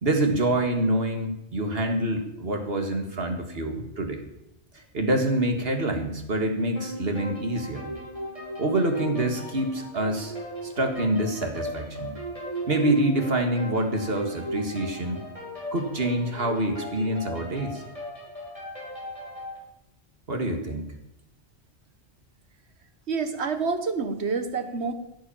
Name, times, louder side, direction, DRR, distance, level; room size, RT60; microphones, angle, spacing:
voice 1, 0.0-4.2 4.7-8.0 8.6-10.3 10.6-12.1 12.7-15.2 15.7-17.8 20.3-20.8, right 1 dB, 60° right, 4 dB, 2.2 m, -26 dB
sound 1, 6.8-19.6, equal, 30° right, 4.9 m, -37 dB
voice 2, 23.1-24.9, right 4 dB, 80° right, 9 dB, 1.6 m, -28 dB
15.0 x 8.6 x 7.2 m, 0.85 s
omnidirectional pair, 1.1 m